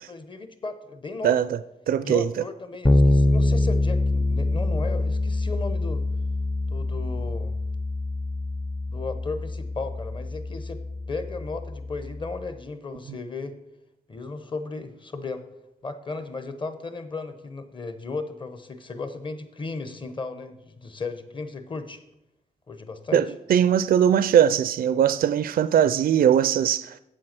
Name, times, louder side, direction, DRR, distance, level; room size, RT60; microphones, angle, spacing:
voice 1, 0.1-1.4 2.0-6.0 6.7-7.6 8.9-10.8 11.1-13.6 14.1-15.4 15.8-22.0 22.7-23.2, left 3 dB, 30° left, 0.9 m, -35 dB
voice 2, 1.2-1.6 1.9-2.3 23.1-27.0, right 9 dB, 70° right, 0.4 m, -20 dB
Bass guitar, 2.8-12.5, left 2 dB, 15° left, 0.5 m, -25 dB
8.0 x 7.7 x 6.0 m
wide cardioid pair, 135°, 16 cm